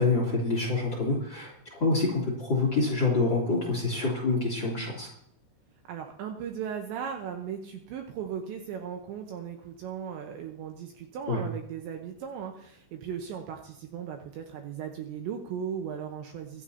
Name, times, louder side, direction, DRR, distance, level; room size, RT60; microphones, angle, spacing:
voice 1, 0.0-5.1 11.3-11.4, left 3 dB, 30° left, -1 dB, 2.9 m, -26 dB
voice 2, 5.9-16.6, right 8 dB, 75° right, 4 dB, 2.8 m, -37 dB
24.0 x 11.0 x 2.8 m, 0.70 s
omnidirectional pair, 5.9 m